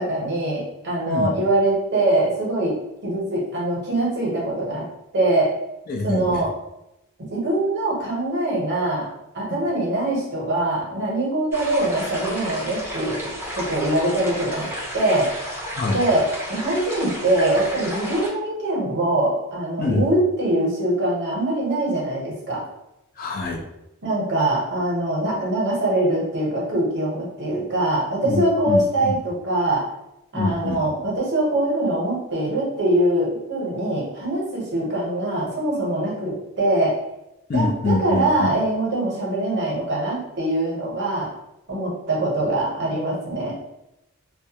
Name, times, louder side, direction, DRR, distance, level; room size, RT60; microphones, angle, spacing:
voice 1, 0.0-2.8 3.0-4.9 5.1-5.5 6.0-6.5 7.3-9.1 9.3-15.3 15.9-22.6 24.0-29.8 30.3-36.9 37.5-41.3 41.7-43.5, right 1 dB, 50° right, -4 dB, 0.8 m, -23 dB
voice 2, 5.9-6.4 15.7-16.0 19.8-20.1 23.2-23.6 28.2-29.2 30.3-30.8 37.5-38.5, left 2 dB, 40° left, 1 dB, 0.3 m, -25 dB
sound 1, 11.5-18.3, equal, 10° right, 0.5 m, -32 dB
2.2 x 2.1 x 2.8 m, 0.88 s
head